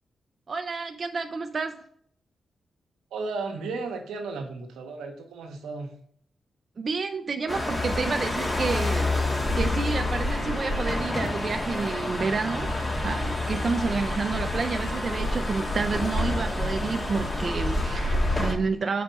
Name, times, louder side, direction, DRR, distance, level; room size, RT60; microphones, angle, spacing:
voice 1, 0.5-1.8 6.8-9.1 9.5-19.0, right 4 dB, 55° right, 7 dB, 0.4 m, -30 dB
voice 2, 3.1-5.9, right 3 dB, 90° right, 4 dB, 0.8 m, -34 dB
sound 1, 7.5-18.5, left 1 dB, 30° left, 1.6 m, -28 dB
5.2 x 4.6 x 3.9 m, 0.63 s
supercardioid pair, 50°, 0 cm